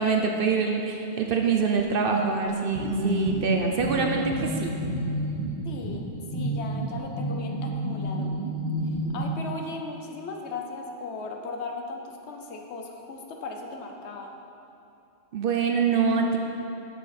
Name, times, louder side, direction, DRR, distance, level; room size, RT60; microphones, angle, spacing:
voice 1, 0.0-4.8 15.3-16.4, right 5 dB, 60° right, 3 dB, 0.8 m, -25 dB
sound 1, 2.4-9.3, equal, 30° left, 1.5 m, -30 dB
voice 2, 5.6-8.4 8.9-14.3, left 3 dB, 70° left, 3 dB, 1.1 m, -37 dB
8.2 x 6.8 x 4.2 m, 2.8 s
omnidirectional pair, 1.2 m